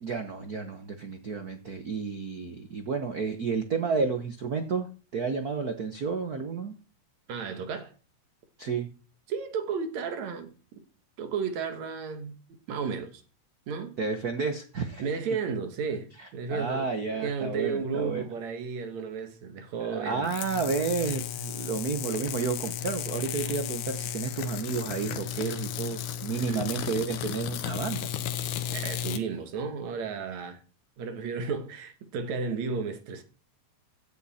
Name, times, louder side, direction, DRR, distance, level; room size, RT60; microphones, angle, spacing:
voice 1, 0.0-6.8 8.6-8.9 14.0-15.0 16.2-18.2 19.8-28.1, right 5 dB, 85° right, 0.8 m, -31 dB
voice 2, 7.3-7.9 9.3-10.8 11.2-12.4 12.7-13.2 13.7-14.0 15.0-20.3 26.4-26.7 28.5-30.6 31.0-33.2, right 5 dB, 70° right, 2.7 m, -33 dB
sound 1, 20.2-29.2, left 10 dB, 80° left, 2.3 m, -34 dB
15.5 x 9.3 x 4.3 m
omnidirectional pair, 3.4 m